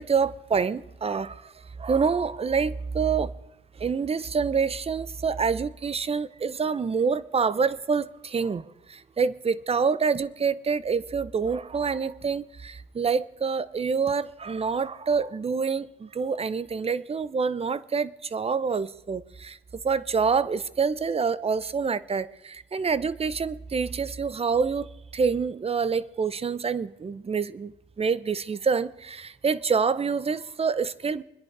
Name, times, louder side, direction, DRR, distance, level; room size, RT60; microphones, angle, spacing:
voice 1, 0.0-1.5 1.8-3.3 3.8-19.6 19.8-31.2, right 5 dB, 30° right, 0.8 m, -27 dB
25.0 x 10.5 x 4.8 m
cardioid pair, 90°, 20 cm